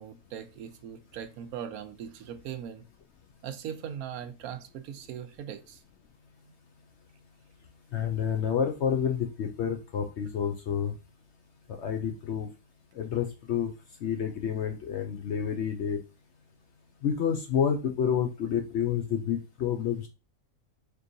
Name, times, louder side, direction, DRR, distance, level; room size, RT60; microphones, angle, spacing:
voice 1, 0.0-2.8 3.4-5.8, right 9 dB, 75° right, 1.0 m, -40 dB
voice 2, 7.9-10.9 11.8-12.5 12.9-13.7 14.0-16.0 17.0-20.1, left 8 dB, 65° left, 0.7 m, -29 dB
4.5 x 3.1 x 2.6 m
omnidirectional pair, 1.6 m